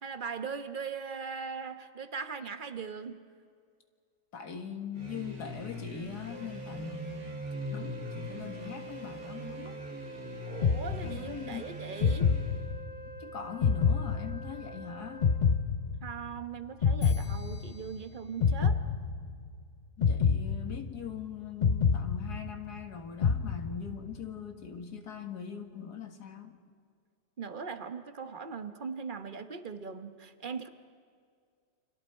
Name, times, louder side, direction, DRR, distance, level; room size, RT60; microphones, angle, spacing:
voice 1, 0.0-3.2 10.5-12.3 16.0-18.8 27.4-30.7, right 5 dB, 35° right, 8 dB, 1.1 m, -39 dB
voice 2, 4.3-7.3 7.7-9.8 11.0-11.7 13.2-15.2 20.1-26.6, left 7 dB, 85° left, 5 dB, 2.2 m, -41 dB
sound 1, 4.9-12.8, equal, 60° right, 2.6 m, -42 dB
Wind instrument woodwind instrument, 6.3-15.4, right 2 dB, 20° left, 2.1 m, -46 dB
sound 2, 10.6-11.5 12.0-13.1 13.6-14.8 15.2-16.4 16.8-18.0 18.4-19.5 20.0-21.2 21.6-22.8 23.2-24.1, left 6 dB, 50° left, 0.5 m, -27 dB
29.5 x 26.5 x 4.5 m, 2.2 s
omnidirectional pair, 1.7 m